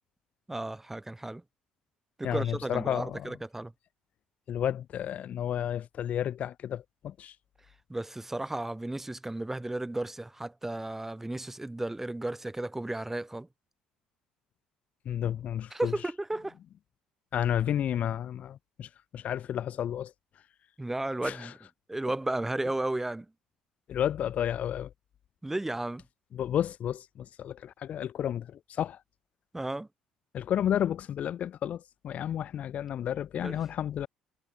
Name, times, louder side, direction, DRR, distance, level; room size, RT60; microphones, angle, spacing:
voice 1, 0.5-1.4 2.2-3.7 7.9-13.5 15.7-16.6 20.8-21.6 21.9-23.3 25.4-26.0 29.5-29.9 33.4-33.6, right 2 dB, 10° right, 1.6 m, -34 dB
voice 2, 2.2-3.3 4.5-7.3 15.1-15.9 17.3-20.1 21.2-21.5 23.9-24.9 26.3-29.0 30.3-34.1, left 10 dB, 55° left, 0.8 m, -31 dB
hypercardioid pair, 65°, 3 cm